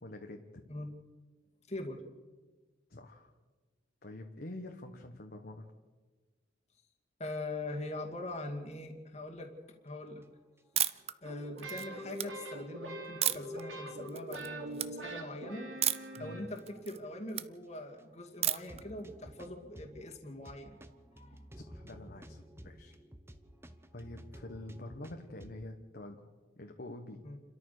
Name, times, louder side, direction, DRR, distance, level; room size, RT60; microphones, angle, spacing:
voice 1, 0.0-0.6 2.9-3.3 4.0-5.7 16.2-16.4 21.5-22.9 23.9-26.2 26.6-27.2, left 1 dB, 50° left, 3 dB, 1.4 m, -46 dB
voice 2, 1.7-2.0 7.2-9.5 9.8-10.2 11.2-15.7 16.2-20.8 21.1-21.4 27.2-27.4, left 1 dB, 35° left, 2 dB, 2.3 m, -42 dB
sound 1, 10.2-11.0 11.3-11.4 12.0-12.1 12.3-12.4 12.9-13.8 14.5-14.8 15.1-15.2 15.9-16.3 16.6-16.7 16.9-17.0 17.6-17.7 18.0-18.1 18.5-25.6, equal, 15° right, 1.0 m, -53 dB
sound 2, 10.8-11.1 11.6-12.2 13.2-13.6 14.1-14.5 14.7-14.9 15.8-16.2 16.6-17.5 18.4-18.8, right 11 dB, 30° right, 0.6 m, -32 dB
sound 3, 11.2-16.9, right 1 dB, 90° right, 4.2 m, -43 dB
29.5 x 13.5 x 6.7 m, 1.3 s
head